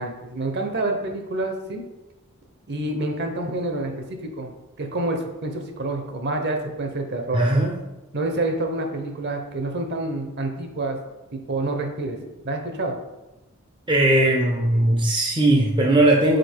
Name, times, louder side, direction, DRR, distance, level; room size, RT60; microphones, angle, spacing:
voice 1, 0.0-1.8 2.7-4.5 4.8-7.4 8.1-11.0 11.3-12.2 12.4-13.0, right 2 dB, 50° right, 4 dB, 0.8 m, -28 dB
voice 2, 7.3-7.7 13.9-16.4, right 1 dB, 20° right, 0 dB, 0.5 m, -18 dB
5.2 x 4.3 x 4.5 m, 1.0 s
head